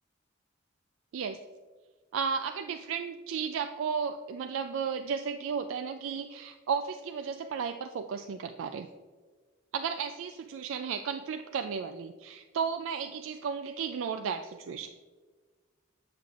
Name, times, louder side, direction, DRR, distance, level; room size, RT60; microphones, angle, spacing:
voice 1, 2.1-8.9 9.7-14.9, right 6 dB, 75° right, 7 dB, 0.3 m, -34 dB
7.6 x 7.2 x 2.4 m, 1.4 s
head